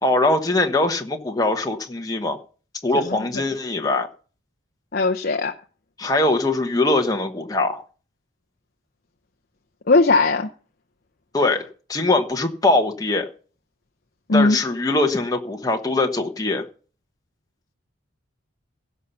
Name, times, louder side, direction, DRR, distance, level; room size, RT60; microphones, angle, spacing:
voice 1, 0.0-2.4 2.8-4.1 6.0-7.8 11.3-13.3 14.3-16.6, left 2 dB, 20° left, 1.0 m, -22 dB
voice 2, 3.1-3.4 4.9-5.5 9.9-10.5 14.3-14.6, left 3 dB, 50° left, 0.7 m, -19 dB
16.5 x 5.6 x 6.9 m
head